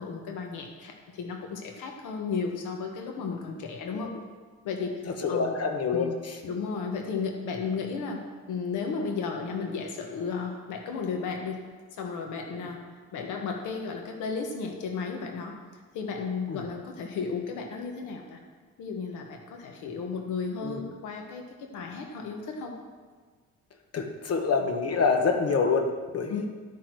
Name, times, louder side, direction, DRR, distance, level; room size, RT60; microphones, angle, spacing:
voice 1, 0.0-4.1 4.6-5.6 5.9-6.1 6.4-8.2 8.5-11.6 11.9-12.8 13.1-15.5 15.9-18.4 18.8-22.7 26.3-26.4, left 5 dB, 90° left, 3 dB, 1.4 m, -34 dB
voice 2, 5.2-6.4 16.5-16.7 20.6-20.8 23.9-26.5, left 4 dB, 55° left, 4 dB, 1.2 m, -27 dB
12.0 x 6.3 x 4.7 m, 1.4 s
cardioid pair, 90°, 30 cm